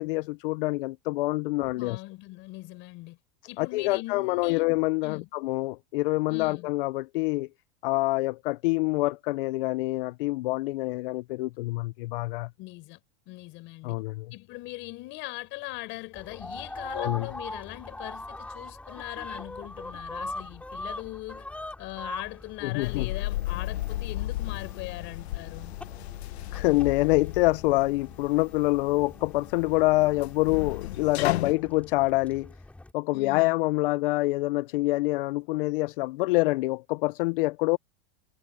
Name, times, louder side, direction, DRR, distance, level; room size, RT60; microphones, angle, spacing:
voice 1, 0.0-2.0 3.6-7.5 7.8-12.5 13.8-14.3 17.0-17.3 22.6-23.1 26.5-32.5 32.9-37.8, left 21 dB, 60° left, 0.5 m, -26 dB
voice 2, 1.7-3.2 3.5-4.6 5.0-5.3 6.3-6.7 12.6-13.0 13.3-14.0 14.3-21.5 21.8-25.7 33.1-33.6, left 20 dB, 40° left, 4.9 m, -40 dB
sound 1, 16.1-32.9, left 2 dB, 5° left, 6.2 m, -42 dB
sound 2, 22.8-31.5, left 15 dB, 85° left, 1.2 m, -34 dB
supercardioid pair, 165°, 31 cm